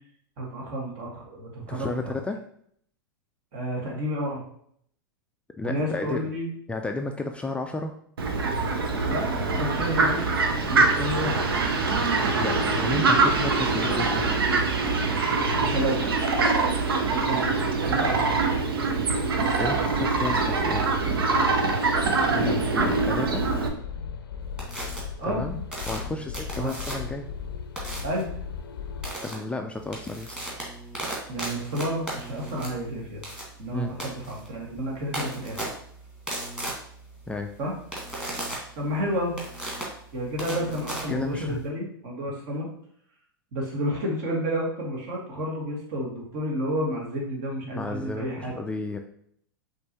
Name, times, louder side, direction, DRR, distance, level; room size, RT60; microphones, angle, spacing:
voice 1, 0.4-2.1 3.5-4.4 5.6-6.5 9.1-11.5 15.5-16.0 17.0-18.4 22.3-22.6 25.2-25.4 26.5-26.7 28.0-28.3 31.3-33.2 33.6-35.6 37.6-37.7 38.7-39.3 40.1-42.7 43.5-48.6, equal, 55° right, -1 dB, 1.6 m, -31 dB
voice 2, 1.6-2.4 5.6-6.2 6.7-7.9 12.4-14.3 19.6-21.5 22.3-23.4 25.2-25.6 25.9-27.3 29.2-30.4 33.7-33.9 37.3-37.5 41.1-41.6 47.6-49.0, left 2 dB, 10° left, 4 dB, 0.3 m, -32 dB
Fowl, 8.2-23.7, right 3 dB, 80° right, 0.7 m, -24 dB
sound 1, 22.6-29.1, left 6 dB, 80° left, 0.5 m, -37 dB
sound 2, 24.6-25.0 25.7-27.2 27.8-28.2 29.0-29.3 29.8-41.7, right 1 dB, 5° right, 1.6 m, -36 dB
5.2 x 3.2 x 2.9 m, 0.66 s
hypercardioid pair, 100°, 12 cm